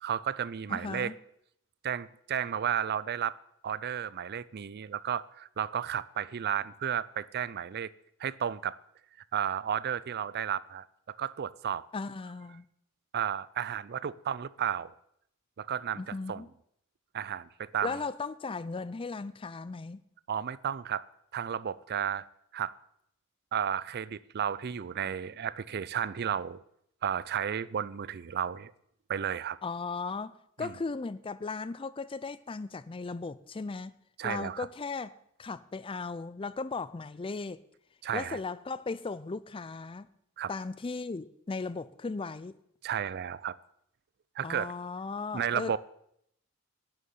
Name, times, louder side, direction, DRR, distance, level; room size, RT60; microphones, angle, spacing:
voice 1, 0.0-1.1 1.8-3.4 3.6-7.9 8.2-8.8 9.3-11.8 13.1-14.9 15.6-16.4 17.1-18.0 20.3-21.0 21.3-22.3 22.5-22.7 23.5-26.6 27.0-28.7 29.1-29.6 30.6-30.7 34.2-34.7 38.0-38.4 40.4-40.5 42.8-43.6 44.4-44.7 45.3-45.8, right 9 dB, 45° right, 0.4 m, -33 dB
voice 2, 0.7-1.1 11.9-12.6 16.0-16.5 17.8-20.0 29.6-33.9 34.2-35.1 35.4-37.6 38.1-40.1 40.5-42.6 44.4-45.8, left 4 dB, 25° left, 0.4 m, -37 dB
11.0 x 6.7 x 9.3 m
head